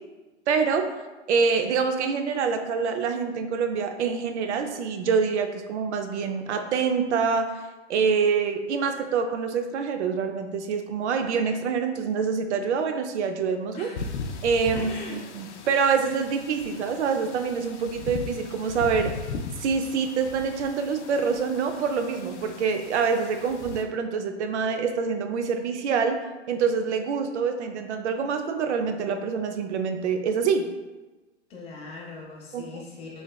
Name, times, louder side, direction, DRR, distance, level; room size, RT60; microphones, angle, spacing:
voice 1, 0.5-0.9 1.3-7.6 7.9-13.9 14.4-19.1 19.6-26.2 26.5-30.7 32.5-32.6, right 5 dB, 70° right, 6 dB, 0.5 m, -26 dB
voice 2, 13.7-14.1 14.7-15.2 31.5-33.2, left 2 dB, 15° left, -3 dB, 0.6 m, -40 dB
sound 1, 14.0-23.8, left 4 dB, 70° left, 0.5 m, -38 dB
3.2 x 2.9 x 2.2 m, 1.2 s
hypercardioid pair, 120°, 36 cm